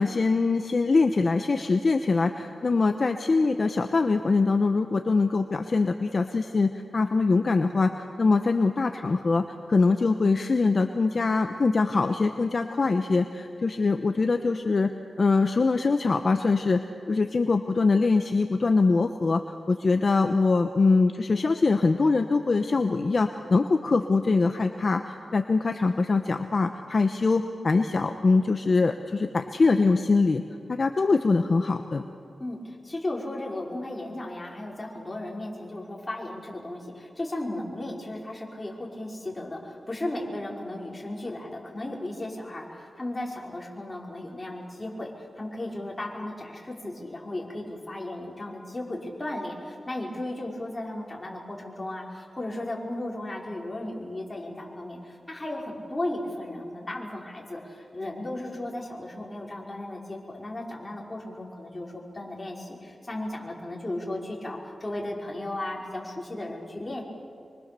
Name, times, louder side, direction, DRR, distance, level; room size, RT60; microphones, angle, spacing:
voice 1, 0.0-14.9 15.2-16.8 17.1-30.4 30.7-32.0, left 3 dB, 50° left, 6 dB, 1.0 m, -23 dB
voice 2, 32.4-67.0, left 1 dB, 25° left, -2 dB, 5.3 m, -35 dB
25.5 x 24.0 x 7.0 m, 2.4 s
wide cardioid pair, 70°, 0 cm